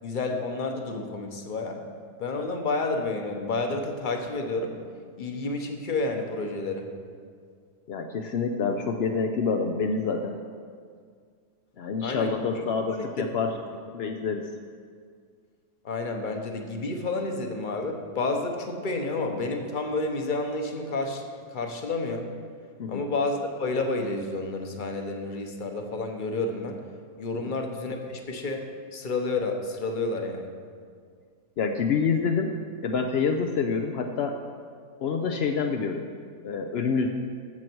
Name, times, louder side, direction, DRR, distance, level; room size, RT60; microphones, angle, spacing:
voice 1, 0.0-1.8 2.2-4.7 5.2-6.9 12.0-12.3 12.6-13.3 15.8-21.2 21.5-22.3 22.9-26.8 27.2-28.6 28.9-30.5, left 3 dB, 35° left, 4 dB, 0.9 m, -30 dB
voice 2, 7.9-10.4 11.8-13.5 13.9-14.5 22.8-23.0 27.3-27.5 31.6-32.5 32.8-34.4 35.0-36.0 36.4-37.1, left 5 dB, 65° left, 4 dB, 0.6 m, -27 dB
13.0 x 7.7 x 4.6 m, 2.1 s
omnidirectional pair, 1.7 m